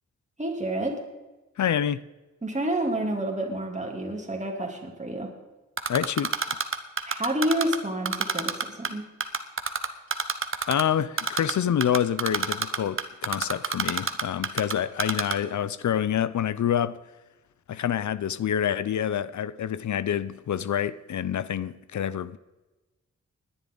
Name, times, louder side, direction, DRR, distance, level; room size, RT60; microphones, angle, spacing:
voice 1, 0.4-1.0 2.4-5.3 7.0-9.0, right 1 dB, 25° right, 3.0 m, -29 dB
voice 2, 1.6-2.0 5.9-6.3 10.7-17.0 17.7-22.4, left 9 dB, 80° left, 0.6 m, -27 dB
Typing, 5.8-7.8 8.1-8.9 9.2-10.8 11.2-11.5 11.8-14.7 15.0-15.3, right 5 dB, 45° right, 1.1 m, -26 dB
19.5 x 11.0 x 3.9 m
wide cardioid pair, 100°, 29 cm